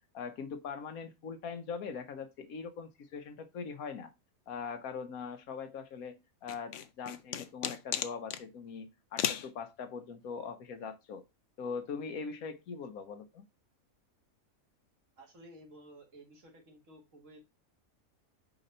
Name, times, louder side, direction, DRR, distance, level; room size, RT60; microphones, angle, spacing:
voice 1, 0.1-4.1 4.5-11.2 11.6-13.5, left 5 dB, 80° left, 8 dB, 1.3 m, -41 dB
sound 1, 6.5-8.4 9.2-9.5, left 9 dB, 65° left, 0.9 m, -34 dB
voice 2, 15.2-17.4, right 1 dB, 60° right, 3 dB, 2.0 m, -54 dB
5.1 x 3.9 x 5.3 m, 0.23 s
omnidirectional pair, 1.5 m